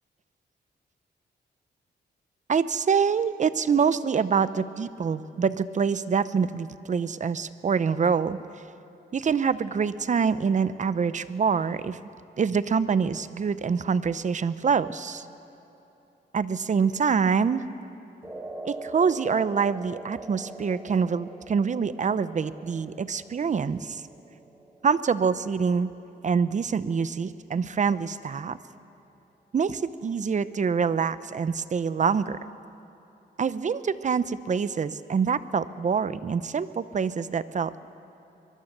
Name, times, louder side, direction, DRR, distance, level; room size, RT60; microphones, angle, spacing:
voice 1, 2.5-8.4 9.1-12.0 12.4-15.3 16.3-17.6 18.6-24.0 24.8-25.9 26.2-28.6 29.5-32.4 33.4-37.8, right 6 dB, 40° right, 14 dB, 0.8 m, -25 dB
sound 1, 18.2-26.6, right 2 dB, 15° right, 2.6 m, -43 dB
24.0 x 22.0 x 6.8 m, 3.0 s
cardioid pair, 105°, 18 cm